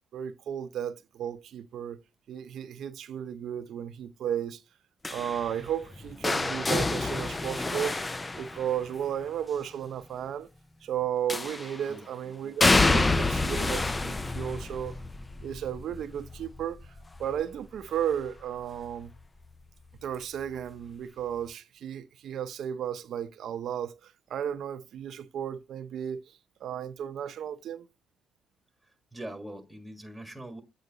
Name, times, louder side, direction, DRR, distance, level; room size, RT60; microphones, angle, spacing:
voice 1, 0.1-2.0 2.3-4.6 5.1-8.0 8.4-10.5 10.8-15.0 15.4-16.8 17.2-19.1 20.0-27.9, right 9 dB, 70° right, 0.7 m, -34 dB
sound 1, 5.0-9.1 11.3-11.9 12.6-18.4 18.8-19.2 20.4-20.5, left 2 dB, 20° left, 0.4 m, -28 dB
voice 2, 28.8-30.6, right 1 dB, ahead, 1.6 m, -42 dB
8.2 x 4.0 x 3.9 m
cardioid pair, 90°, 0 cm